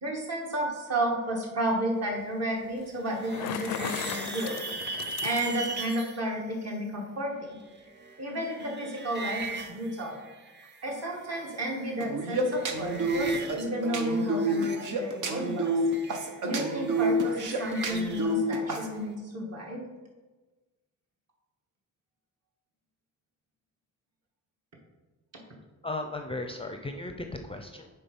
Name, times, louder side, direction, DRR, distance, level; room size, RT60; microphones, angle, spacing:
voice 1, 0.0-4.6 5.0-7.6 8.2-10.2 10.8-15.8 16.4-19.9, right 1 dB, 50° right, -1 dB, 1.9 m, -32 dB
sound 1, 2.8-6.2 7.6-10.9 11.2-12.0 12.3-13.6 13.9-18.3, right 3 dB, 30° right, 0.9 m, -40 dB
Bicycle, 3.1-5.9, left 10 dB, 85° left, 0.5 m, -37 dB
sound 2, 12.0-18.9, right 2 dB, 65° right, 1.0 m, -29 dB
voice 2, 25.8-27.9, left 2 dB, 15° left, 4 dB, 0.5 m, -36 dB
9.0 x 3.7 x 5.3 m, 1.2 s
cardioid pair, 115°, 33 cm